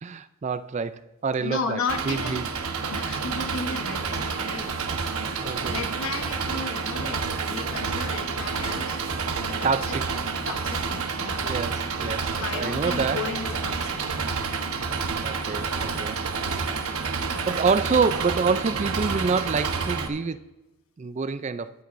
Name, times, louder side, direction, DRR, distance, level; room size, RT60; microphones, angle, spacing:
voice 1, 0.0-2.5 4.1-4.2 5.4-5.8 9.6-10.1 11.4-13.2 15.2-16.2 17.5-20.4 21.0-21.7, right 5 dB, 30° right, 0.3 m, -27 dB
voice 2, 1.4-2.4 2.9-4.8 5.7-9.0 9.4-9.7 10.4-11.4 12.4-14.3 17.1-17.5, left 3 dB, 70° left, 1.1 m, -34 dB
Engine, 1.9-20.1, right 5 dB, 90° right, 1.1 m, -29 dB
22.0 x 8.4 x 2.6 m
head